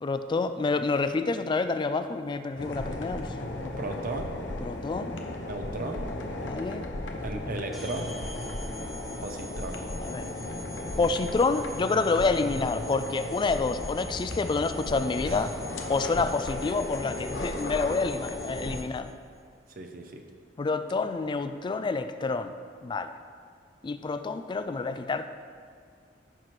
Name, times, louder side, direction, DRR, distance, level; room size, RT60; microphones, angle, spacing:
voice 1, 0.0-3.9 4.6-5.1 6.4-6.9 7.1-7.5 8.6-8.8 10.0-10.3 11.0-15.5 15.9-19.1 20.6-22.5 22.8-23.1 23.8-25.3, left 4 dB, 25° left, 10 dB, 0.3 m, -28 dB
sound 1, 2.6-18.8, left 1 dB, 75° left, 0.9 m, -36 dB
voice 2, 3.8-4.4 5.4-6.1 7.2-8.1 9.2-9.8 15.3-15.5 16.2-16.3 18.7-18.9 19.8-20.2, right 2 dB, 50° right, 3 dB, 0.7 m, -36 dB
sound 2, 7.7-19.1, equal, ahead, 1.3 m, -46 dB
14.5 x 6.0 x 3.2 m, 2.1 s
head